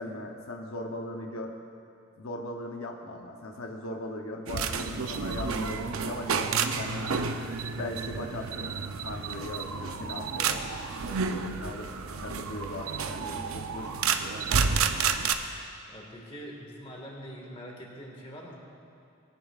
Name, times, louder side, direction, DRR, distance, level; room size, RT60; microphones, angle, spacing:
voice 1, 0.0-1.5 2.2-7.3 7.7-10.6 11.1-11.9 12.2-14.6, left 1 dB, 85° left, 2 dB, 0.8 m, -39 dB
sound 1, 4.5-15.3, right 5 dB, 90° right, 0.6 m, -30 dB
voice 2, 15.9-18.5, equal, 25° left, -2 dB, 1.8 m, -43 dB
20.0 x 10.5 x 2.4 m, 2.5 s
head